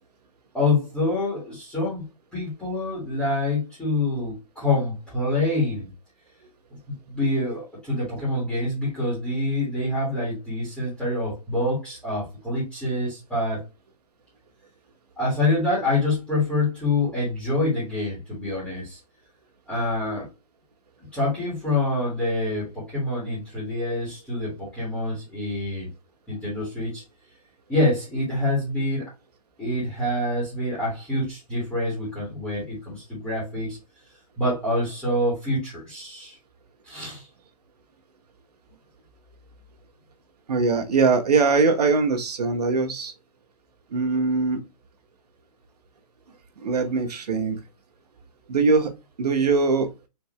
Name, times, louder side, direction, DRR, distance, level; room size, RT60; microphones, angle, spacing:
voice 1, 0.5-2.0 2.3-5.9 7.1-13.6 15.2-19.0 19.7-20.3 21.1-25.9 26.3-27.0 27.7-29.0 29.6-33.8 34.4-36.4 36.9-37.3, left 2 dB, 5° left, 1.6 m, -26 dB
voice 2, 40.5-43.1 43.9-44.6 46.6-47.6 48.5-48.9 49.2-49.9, right 4 dB, 80° right, 1.1 m, -21 dB
4.3 x 2.9 x 3.1 m
hypercardioid pair, 175°, 20 cm